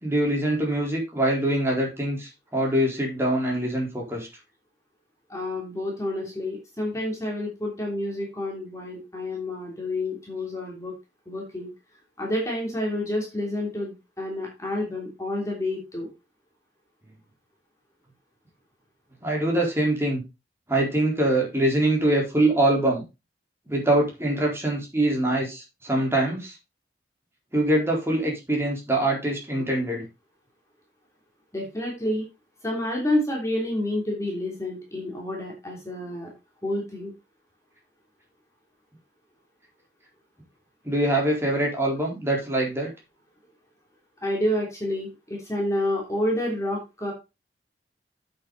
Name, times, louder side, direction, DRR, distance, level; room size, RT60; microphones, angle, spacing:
voice 1, 0.0-4.3 19.2-20.2 20.7-23.0 23.7-26.6 27.5-30.0 40.8-42.9, right 1 dB, 15° right, -2 dB, 4.1 m, -24 dB
voice 2, 5.3-10.9 11.3-11.7 12.2-16.1 31.5-32.2 32.6-36.3 36.6-37.1 44.2-47.1, left 1 dB, 15° left, -1 dB, 3.2 m, -29 dB
8.6 x 8.1 x 4.1 m, 0.26 s
head